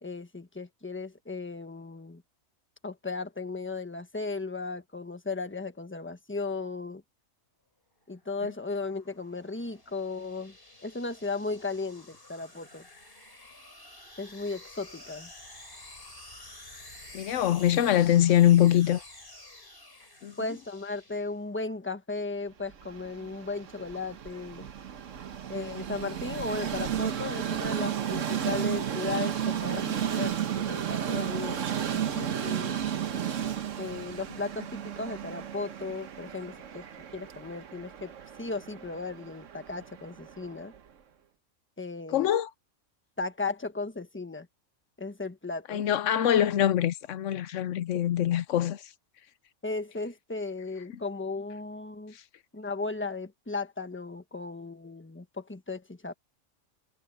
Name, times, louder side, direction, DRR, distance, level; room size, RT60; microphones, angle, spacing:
voice 1, 0.0-2.2 2.8-7.0 8.1-10.5 10.8-12.8 14.2-15.3 20.4-24.7 25.5-31.6 31.9-32.7 33.8-36.8 37.1-38.1 38.4-40.7 41.8-42.3 43.2-44.5 45.0-45.8 49.6-52.1 52.5-56.1, left 3 dB, 10° left, 1.2 m, -36 dB
sound 1, 8.2-21.6, left 1 dB, 50° left, 5.4 m, -50 dB
voice 2, 17.1-19.0 20.2-20.3 42.1-42.5 45.7-48.8, left 11 dB, 80° left, 1.0 m, -23 dB
Train, 22.7-40.8, right 9 dB, 80° right, 1.4 m, -33 dB
omnidirectional pair, 1.3 m